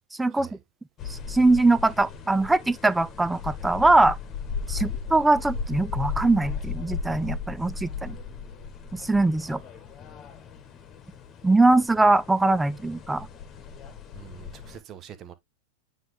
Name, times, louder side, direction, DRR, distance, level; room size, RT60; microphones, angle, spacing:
voice 1, 0.3-0.6 4.7-4.9 9.4-9.6 14.1-15.3, right 10 dB, 30° right, 1.0 m, -46 dB
sound 1, 1.0-14.8, left 6 dB, 25° left, 1.4 m, -36 dB
voice 2, 1.1-4.2 4.7-8.2 8.9-9.6 11.4-13.3, right 2 dB, 5° right, 0.4 m, -22 dB
9.2 x 3.5 x 3.3 m
figure-of-eight pair, 90°, 0 cm